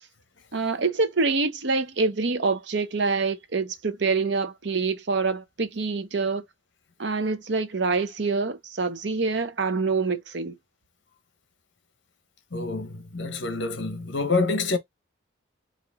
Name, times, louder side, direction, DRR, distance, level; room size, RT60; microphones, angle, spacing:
voice 1, 0.5-6.4 7.0-10.6, right 4 dB, 60° right, 0.7 m, -26 dB
voice 2, 12.5-14.8, left 3 dB, 65° left, 1.0 m, -27 dB
4.8 x 2.5 x 3.5 m
head